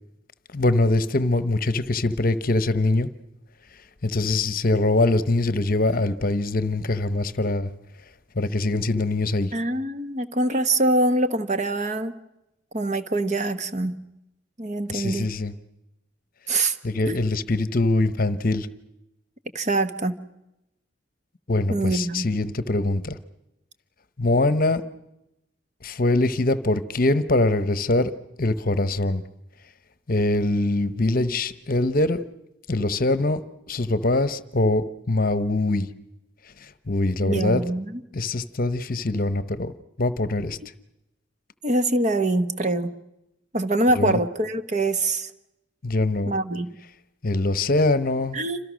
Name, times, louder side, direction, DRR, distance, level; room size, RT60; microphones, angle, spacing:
voice 1, 0.5-3.1 4.0-7.7 8.3-9.5 14.9-15.5 16.8-18.7 21.5-23.2 24.2-24.8 25.8-28.1 28.4-29.2 30.1-32.2 32.7-33.4 33.7-35.9 36.6-37.6 38.1-39.7 40.0-40.6 43.9-44.2 45.8-46.3 47.2-48.4, left 2 dB, 45° left, 14 dB, 1.0 m, -23 dB
voice 2, 9.5-12.1 12.7-13.9 14.6-15.3 16.5-16.8 17.1-17.2 19.5-20.2 21.7-22.3 37.2-38.0 41.6-42.9 43.5-45.3 46.3-46.7 48.3-48.6, right 2 dB, 35° right, 10 dB, 1.1 m, -24 dB
28.0 x 26.0 x 6.3 m, 0.90 s
head